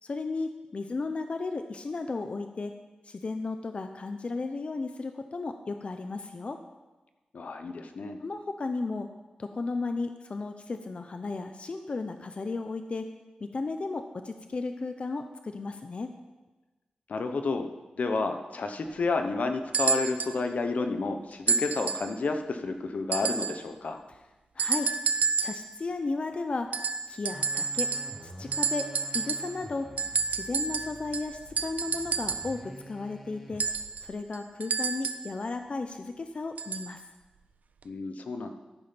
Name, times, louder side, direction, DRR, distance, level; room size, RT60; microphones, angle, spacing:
voice 1, 0.0-2.7 3.0-6.6 8.2-9.1 9.4-13.1 13.4-16.1 24.5-24.9 25.4-26.7 27.1-27.9 28.2-29.9 30.3-33.6 34.0-37.0, left 3 dB, 50° left, 7 dB, 0.6 m, -34 dB
voice 2, 7.3-8.2 17.1-17.7 18.0-24.0 37.8-38.5, left 3 dB, 70° left, 6 dB, 1.0 m, -30 dB
sound 1, 19.7-20.4 21.5-22.1 23.1-23.7 24.6-25.7 26.7-28.3 28.5-29.6 30.0-32.6 33.6-35.3 36.6-36.9 37.8-37.9, right 5 dB, 80° right, 0.5 m, -30 dB
sound 2, 27.3-34.1, right 1 dB, ahead, 2.4 m, -48 dB
13.5 x 5.3 x 5.8 m, 1.2 s
wide cardioid pair, 75°, 3 cm